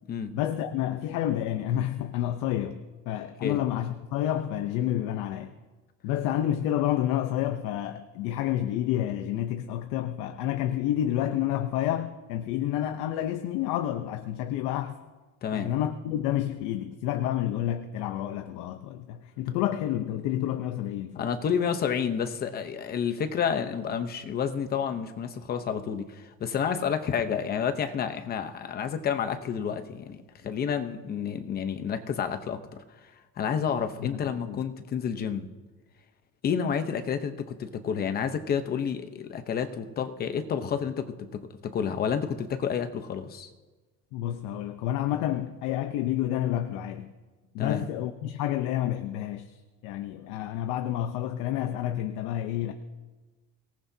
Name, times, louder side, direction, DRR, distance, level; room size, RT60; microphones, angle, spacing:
voice 1, 0.3-5.5 6.0-15.0 15.5-21.3 34.0-34.6 44.1-47.1 47.5-52.7, left 12 dB, 80° left, 0.9 m, -29 dB
voice 2, 15.4-15.7 21.2-32.8 33.4-35.5 36.4-43.5 47.6-47.8, left 7 dB, 30° left, 0.9 m, -30 dB
24.5 x 18.5 x 2.8 m
cardioid pair, 170°, 30 cm